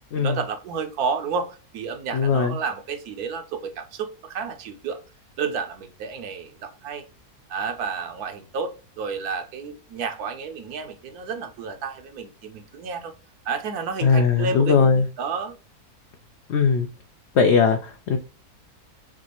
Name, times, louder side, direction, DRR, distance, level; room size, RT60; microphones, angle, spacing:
voice 1, 0.2-5.0 5.4-7.0 7.5-13.1 13.5-15.6, right 5 dB, 75° right, 1.2 m, -31 dB
voice 2, 2.1-2.6 14.0-15.1 16.5-16.9 17.4-18.2, left 5 dB, 70° left, 0.6 m, -19 dB
6.1 x 2.4 x 2.9 m
omnidirectional pair, 1.7 m